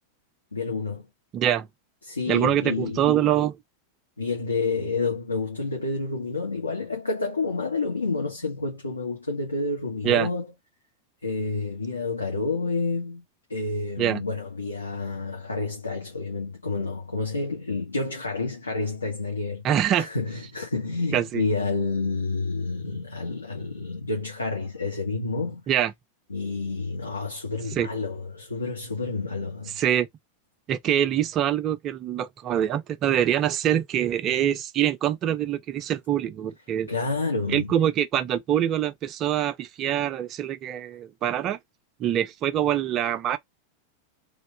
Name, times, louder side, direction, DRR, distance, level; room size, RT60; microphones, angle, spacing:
voice 1, 0.5-1.0 2.0-3.0 4.2-10.5 11.2-13.2 13.5-19.6 20.0-25.6 26.3-29.8 36.9-37.7, left 3 dB, 80° left, 1.1 m, -29 dB
voice 2, 1.3-1.7 2.3-3.6 10.0-10.3 14.0-14.2 19.6-20.1 21.1-21.4 25.7-25.9 27.7-27.9 29.8-30.1 30.7-36.9 37.5-41.6 42.0-43.4, right 10 dB, 30° right, 0.5 m, -24 dB
3.4 x 2.7 x 3.3 m
figure-of-eight pair, 90°, 0 cm